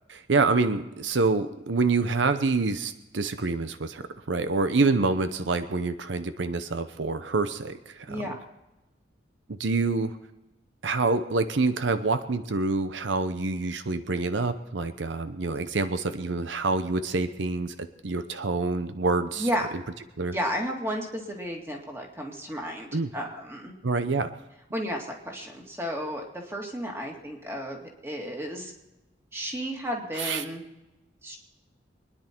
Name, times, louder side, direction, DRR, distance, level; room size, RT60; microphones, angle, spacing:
voice 1, 0.1-8.2 9.5-10.1 10.8-17.8 18.0-19.5 20.2-20.3 22.9-23.1 23.8-24.3 30.2-30.4, right 3 dB, 85° right, 11 dB, 0.8 m, -26 dB
voice 2, 19.4-19.7 20.3-23.8 24.7-28.7 29.3-30.6 31.2-31.4, equal, 15° right, 1 dB, 2.2 m, -33 dB
24.5 x 10.0 x 4.5 m, 0.98 s
head